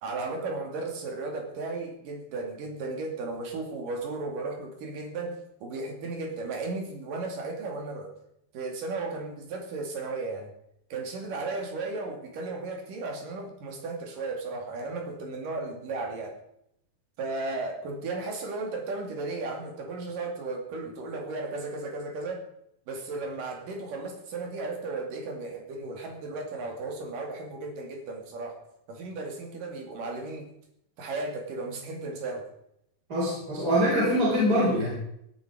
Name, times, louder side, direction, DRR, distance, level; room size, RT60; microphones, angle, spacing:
voice 1, 0.0-8.1 8.5-10.5 10.9-16.4 17.2-22.4 22.9-28.6 28.9-30.5 31.0-32.5, right 3 dB, 80° right, 2 dB, 4.2 m, -35 dB
voice 2, 33.1-34.9, equal, 25° right, -6 dB, 5.3 m, -24 dB
17.0 x 11.0 x 5.0 m, 0.77 s
omnidirectional pair, 3.8 m